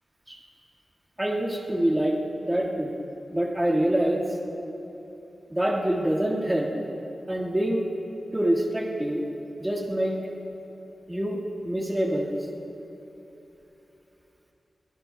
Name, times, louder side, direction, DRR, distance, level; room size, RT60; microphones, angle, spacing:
voice 1, 1.2-2.9 3.3-4.2 5.5-6.7 7.3-7.8 8.3-9.2 9.6-10.1 11.1-12.3, right 1 dB, 15° right, -3 dB, 1.8 m, -25 dB
23.0 x 21.5 x 2.3 m, 3.0 s
wide cardioid pair, 130°, 0 cm